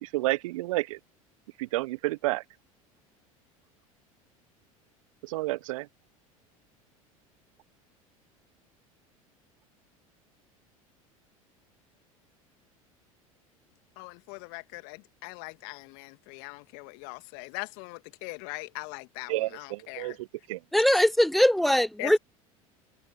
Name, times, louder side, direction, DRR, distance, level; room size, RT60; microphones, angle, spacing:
voice 1, 0.0-1.0 1.6-2.4 5.2-5.9 19.3-20.6, right 19 dB, 65° right, 0.7 m, -30 dB
voice 2, 14.0-20.2 22.0-22.2, left 34 dB, 60° left, 1.8 m, -41 dB
voice 3, 20.7-22.2, equal, ahead, 0.4 m, -21 dB
figure-of-eight pair, 75°, 18 cm